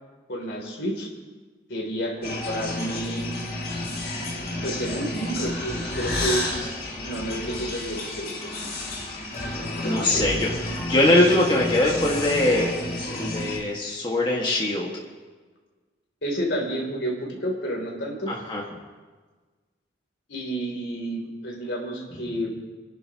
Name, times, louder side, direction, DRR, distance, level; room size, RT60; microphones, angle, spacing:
voice 1, 0.3-1.1 1.7-3.3 4.6-8.7 9.8-10.3 16.2-18.3 20.3-22.5, right 1 dB, 75° left, 0 dB, 3.1 m, -30 dB
sound 1, 2.2-13.6, left 2 dB, 55° left, 3.0 m, -31 dB
voice 2, 9.8-12.7 13.1-14.9 18.3-18.6, left 1 dB, 25° left, -3 dB, 1.7 m, -22 dB
30.0 x 11.0 x 3.0 m, 1.4 s
head